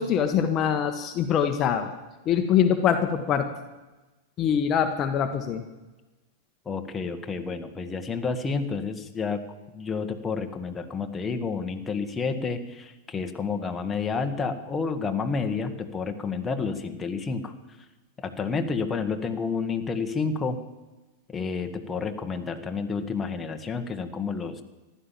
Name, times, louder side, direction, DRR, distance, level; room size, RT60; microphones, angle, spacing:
voice 1, 0.0-1.9 2.2-3.5 4.4-5.6, left 8 dB, 35° left, 6 dB, 1.3 m, -23 dB
voice 2, 6.6-9.4 9.7-17.5 18.2-20.6 21.3-24.6, left 5 dB, 20° left, 5 dB, 1.6 m, -30 dB
15.0 x 11.5 x 7.5 m, 1.1 s
hypercardioid pair, 95°, 0 cm